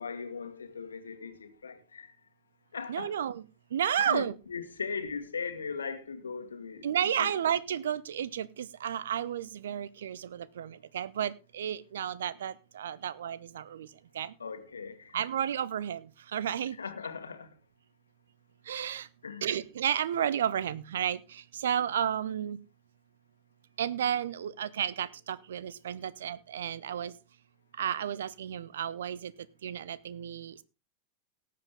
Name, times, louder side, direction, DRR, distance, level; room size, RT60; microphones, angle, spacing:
voice 1, 0.0-2.1 2.7-3.1 4.0-6.9 7.2-7.3 14.4-15.3 16.8-17.5 19.2-19.5, left 5 dB, 70° left, 1.5 m, -38 dB
voice 2, 2.9-3.4 3.7-4.3 6.8-13.9 14.1-14.3 15.1-16.8 18.7-19.1 19.4-22.6 23.8-27.1 27.8-29.3 29.6-30.6, right 9 dB, 60° right, 0.5 m, -32 dB
18.5 x 7.5 x 3.6 m
figure-of-eight pair, 90°, 0 cm